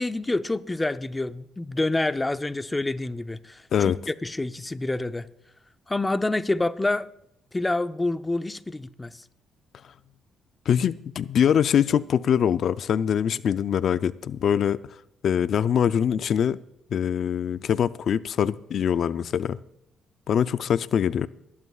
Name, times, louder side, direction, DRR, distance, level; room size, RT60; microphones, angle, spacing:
voice 1, 0.0-5.3 5.9-7.1 7.5-9.2, left 2 dB, 15° left, 0.7 m, -27 dB
voice 2, 10.7-14.8 15.2-16.6 16.9-19.6 20.3-21.3, left 8 dB, 60° left, 0.4 m, -23 dB
27.5 x 11.0 x 2.4 m
cardioid pair, 90°, 0 cm